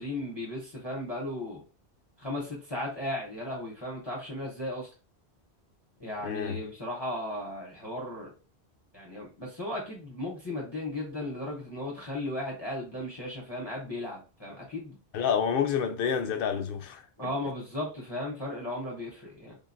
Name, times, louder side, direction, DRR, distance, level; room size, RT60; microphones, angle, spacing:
voice 1, 0.0-1.6 2.2-4.9 6.0-8.3 8.9-14.9 17.2-19.6, left 1 dB, 30° left, 0.7 m, -36 dB
voice 2, 6.2-6.6 15.1-17.0, left 7 dB, 65° left, 0.7 m, -28 dB
3.6 x 2.2 x 2.5 m
omnidirectional pair, 1.1 m